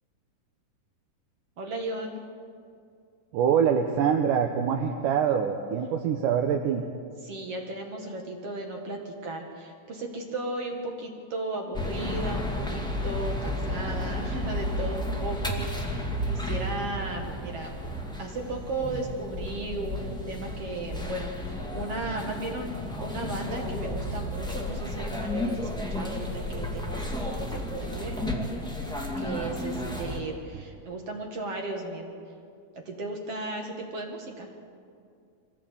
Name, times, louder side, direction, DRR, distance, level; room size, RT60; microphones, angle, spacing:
voice 1, 1.6-2.2 7.2-17.8 18.2-28.2 29.2-32.1 32.7-34.5, right 2 dB, 50° right, 2 dB, 2.7 m, -35 dB
voice 2, 3.3-6.8 15.6-15.7 30.5-30.6, right 7 dB, 80° right, 4 dB, 2.5 m, -25 dB
sound 1, 11.7-30.2, left 1 dB, ahead, 1.5 m, -32 dB
24.0 x 16.5 x 8.5 m, 2.3 s
omnidirectional pair, 3.7 m